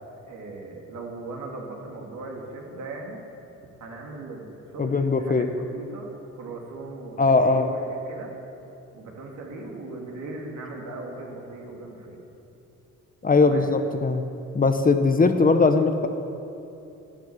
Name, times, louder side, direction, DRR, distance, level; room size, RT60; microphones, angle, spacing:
voice 1, 0.2-3.2 3.8-8.3 8.9-12.2 13.4-13.7, right 2 dB, 70° right, -1 dB, 2.9 m, -38 dB
voice 2, 4.8-5.5 7.2-7.7 13.2-14.2 14.5-16.1, left 3 dB, 30° left, 7 dB, 0.9 m, -20 dB
12.0 x 10.5 x 9.0 m, 2.8 s
cardioid pair, 90°, 30 cm